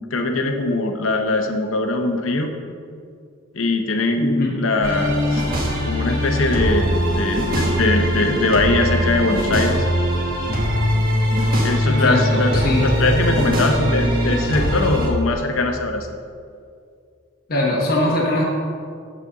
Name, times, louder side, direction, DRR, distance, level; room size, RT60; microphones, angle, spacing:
voice 1, 0.0-2.5 3.5-5.5 5.8-9.8 11.6-16.1, left 2 dB, 70° left, 5 dB, 0.7 m, -21 dB
voice 2, 4.2-4.5 11.9-12.9 17.5-18.4, left 1 dB, 45° left, -3 dB, 1.0 m, -21 dB
sound 1, 4.8-15.1, equal, 45° right, 1.5 m, -21 dB
7.4 x 4.2 x 6.7 m, 2.3 s
head